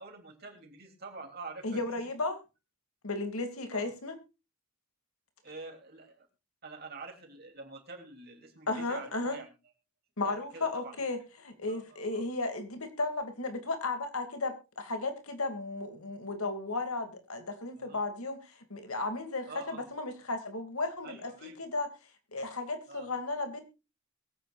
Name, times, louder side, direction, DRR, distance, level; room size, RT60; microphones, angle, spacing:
voice 1, 0.0-2.1 3.7-3.9 5.4-6.3 6.6-9.5 10.2-10.9 11.7-12.3 17.8-18.0 19.5-19.9 21.0-21.6 22.9-23.1, right 3 dB, 45° right, 2 dB, 3.1 m, -46 dB
voice 2, 1.6-2.4 3.0-4.2 8.7-9.4 10.2-21.9 22.3-23.6, left 3 dB, 75° left, 8 dB, 2.5 m, -34 dB
22.5 x 8.9 x 2.5 m, 0.28 s
head